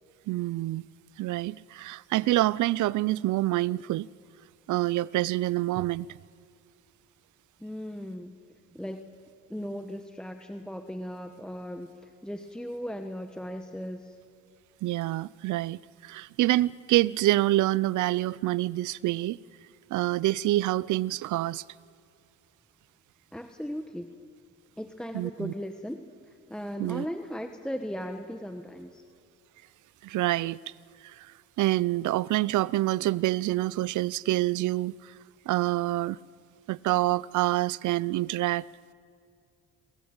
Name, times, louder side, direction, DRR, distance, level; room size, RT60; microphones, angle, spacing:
voice 1, 0.3-0.8 1.2-4.1 4.7-6.1 14.8-19.4 19.9-21.6 25.1-25.5 26.8-27.1 30.0-30.6 31.0-31.3 31.6-35.1 35.5-36.2 36.7-38.7, right 16 dB, 75° right, 0.6 m, -27 dB
voice 2, 7.6-9.0 9.5-14.2 23.3-24.1 24.8-29.0, equal, 5° left, 1.2 m, -37 dB
27.0 x 21.0 x 8.9 m
cardioid pair, 90°, 30 cm